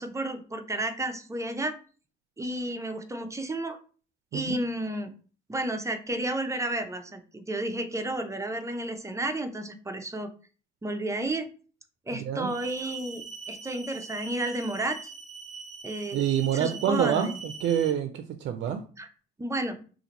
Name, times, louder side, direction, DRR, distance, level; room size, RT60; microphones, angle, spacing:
voice 1, 0.0-1.8 2.4-3.8 4.3-5.1 5.5-10.3 10.8-11.5 12.1-15.0 15.8-16.2 16.5-17.4 19.0-19.1 19.4-19.8, right 1 dB, 15° right, 7 dB, 0.5 m, -32 dB
sound 1, 12.5-17.9, right 5 dB, 40° right, 0.8 m, -42 dB
voice 2, 16.1-18.8, right 9 dB, 65° right, 7 dB, 0.4 m, -27 dB
2.8 x 2.5 x 3.9 m, 0.39 s
cardioid pair, 90°, 20 cm